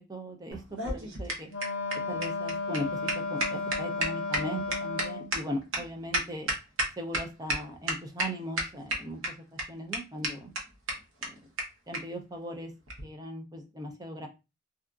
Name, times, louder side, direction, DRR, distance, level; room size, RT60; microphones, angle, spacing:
voice 1, 0.1-0.6 0.8-1.5 2.1-2.8 3.3-6.5 7.0-9.2 9.7-10.5 11.9-12.7 13.0-14.3, equal, 20° right, 3 dB, 0.5 m, -38 dB
sound 1, 0.5-7.2 7.5-7.6 7.9-8.3 8.6-9.3 9.6-9.7 9.9-10.0 10.2-10.3 10.6-10.7 10.9-11.0 11.2-11.3 11.6-11.7 11.9-12.0 12.9-13.0, right 1 dB, 80° right, 0.9 m, -30 dB
Wind instrument woodwind instrument, 1.5-5.4, left 3 dB, 65° left, 0.5 m, -33 dB
2.7 x 2.4 x 2.3 m, 0.26 s
head